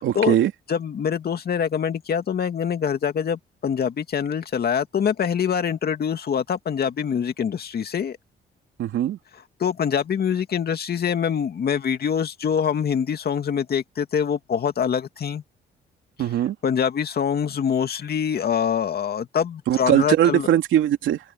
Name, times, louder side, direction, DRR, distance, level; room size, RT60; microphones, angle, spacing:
voice 1, 0.0-0.5 8.8-9.2 16.2-16.5 19.7-21.2, right 11 dB, 80° right, 3.1 m, -20 dB
voice 2, 0.7-8.2 9.6-15.4 16.6-20.5, left 7 dB, 50° left, 2.4 m, -24 dB
open air
cardioid pair, 90°, 20 cm